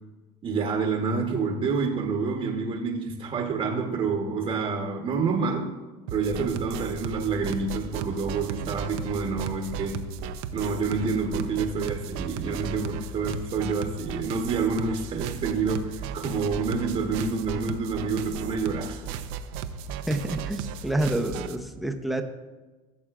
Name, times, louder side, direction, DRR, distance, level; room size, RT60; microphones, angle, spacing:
voice 1, 0.4-5.7 6.1-10.1 10.5-19.0, right 4 dB, 35° right, 1 dB, 1.1 m, -28 dB
sound 1, 6.1-21.6, right 7 dB, 70° right, 0.6 m, -35 dB
voice 2, 20.1-22.2, right 1 dB, ahead, 4 dB, 0.8 m, -28 dB
15.5 x 7.2 x 2.5 m, 1.2 s
supercardioid pair, 125°, 16 cm